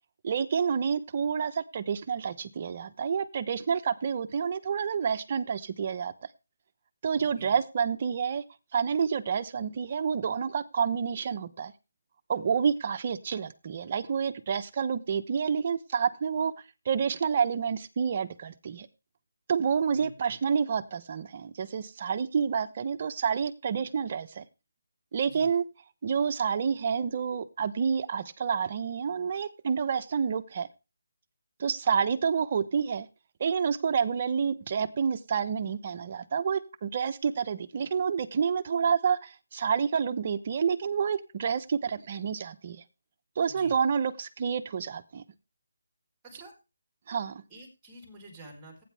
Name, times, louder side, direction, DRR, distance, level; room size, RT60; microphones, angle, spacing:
voice 1, 0.2-6.1 7.0-8.4 8.7-11.7 12.3-16.5 16.8-18.9 19.5-24.4 25.1-25.6 26.0-30.7 31.6-33.1 33.4-42.8 43.4-45.2 47.1-47.4, right 6 dB, 30° right, 9 dB, 1.0 m, -29 dB
voice 2, 7.2-7.6 19.9-20.3 25.2-25.5 43.5-43.7 46.2-46.5 47.5-48.8, right 2 dB, 10° right, 2 dB, 4.3 m, -49 dB
17.0 x 9.4 x 3.4 m, 0.30 s
figure-of-eight pair, 170°, 0 cm